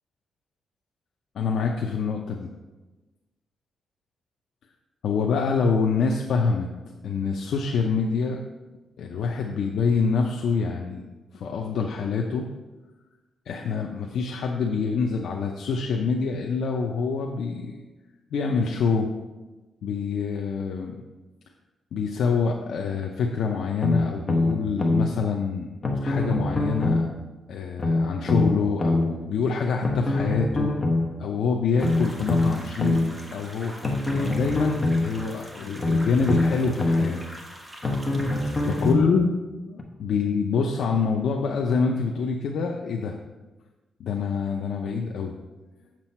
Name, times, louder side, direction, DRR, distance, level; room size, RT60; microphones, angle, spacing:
voice 1, 1.3-2.5 5.0-6.7 7.0-8.4 9.0-11.0 11.3-12.5 13.5-17.8 18.3-19.1 19.8-20.9 21.9-25.7 26.0-27.1 27.5-30.7 31.2-33.0 33.3-33.7 34.1-37.2 38.7-39.3 39.7-43.1 44.0-45.3, left 5 dB, 75° left, 2 dB, 0.6 m, -26 dB
sound 1, 23.8-25.1 25.8-27.1 27.8-29.1 29.8-31.1 31.8-33.1 33.8-35.1 35.8-37.1 37.8-39.1 39.8-39.9, left 2 dB, 30° left, 1.1 m, -23 dB
sound 2, 31.8-38.9, equal, 15° right, 1.4 m, -43 dB
7.6 x 7.1 x 4.4 m, 1.2 s
cardioid pair, 130°, 0 cm